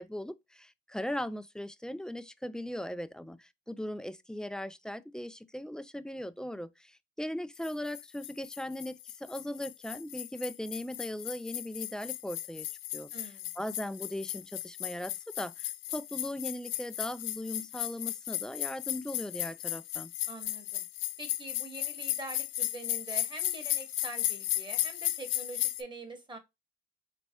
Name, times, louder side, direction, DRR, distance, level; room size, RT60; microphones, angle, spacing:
voice 1, 0.0-12.7 12.9-20.1, left 1 dB, 5° left, 0.3 m, -39 dB
sound 1, 7.6-25.8, left 15 dB, 85° left, 0.4 m, -35 dB
voice 2, 13.1-13.5 20.3-20.8 21.2-26.4, right 2 dB, 25° right, 1.4 m, -44 dB
4.2 x 3.1 x 2.9 m
cardioid pair, 90°, 20 cm